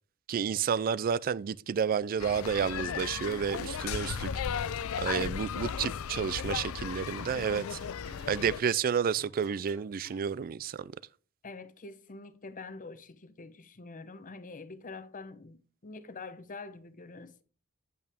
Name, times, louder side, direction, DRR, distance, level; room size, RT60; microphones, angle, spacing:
voice 1, 0.3-4.3 5.0-7.8 8.3-10.9, right 7 dB, 40° right, 0.3 m, -30 dB
sound 1, 2.2-8.6, left 7 dB, 65° left, 0.4 m, -35 dB
sound 2, 7.2-8.4 9.2-10.3, right 2 dB, 70° right, 1.0 m, -54 dB
voice 2, 11.4-17.4, left 3 dB, 40° left, 0.8 m, -45 dB
8.7 x 8.3 x 3.5 m
head